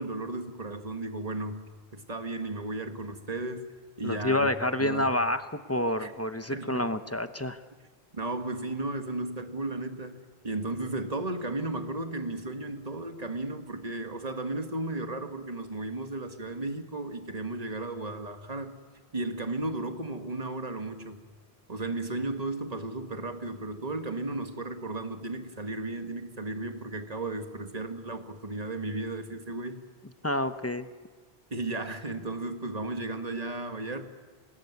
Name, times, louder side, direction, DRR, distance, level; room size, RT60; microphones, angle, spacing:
voice 1, 0.0-4.5 4.8-5.1 6.0-6.1 6.5-6.8 8.1-10.2 10.4-18.8 19.1-21.2 21.7-29.8 31.5-34.0, right 2 dB, 40° right, 7 dB, 1.8 m, -34 dB
voice 2, 4.0-7.6 30.2-30.9, left 1 dB, 15° left, 10 dB, 0.9 m, -28 dB
25.5 x 20.0 x 9.5 m, 1.5 s
omnidirectional pair, 1.0 m